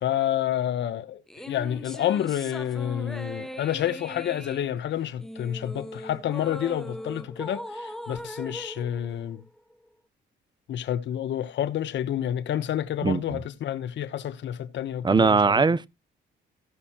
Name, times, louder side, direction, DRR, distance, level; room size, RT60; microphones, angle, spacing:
voice 1, 0.0-9.4 10.7-15.6, left 11 dB, 70° left, 1.1 m, -29 dB
sound 1, 1.3-9.9, equal, ahead, 0.9 m, -40 dB
voice 2, 13.0-13.4 15.0-15.9, right 4 dB, 20° right, 0.7 m, -21 dB
16.0 x 5.6 x 4.3 m
cardioid pair, 90°, 20 cm